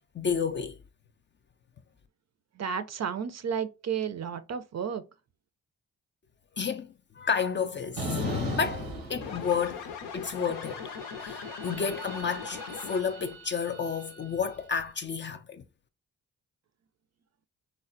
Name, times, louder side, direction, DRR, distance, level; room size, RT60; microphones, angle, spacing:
voice 1, 0.1-0.8 6.6-6.9 7.1-9.9 10.1-10.8 11.2-15.7, left 6 dB, 30° left, 0.4 m, -31 dB
voice 2, 2.6-5.0, right 7 dB, 45° right, 0.5 m, -32 dB
sound 1, 8.0-9.9 10.2-14.6, right 2 dB, 90° right, 0.8 m, -40 dB
sound 2, 9.2-13.3, left 6 dB, 75° left, 0.6 m, -40 dB
3.3 x 2.1 x 2.6 m
supercardioid pair, 40°, 38 cm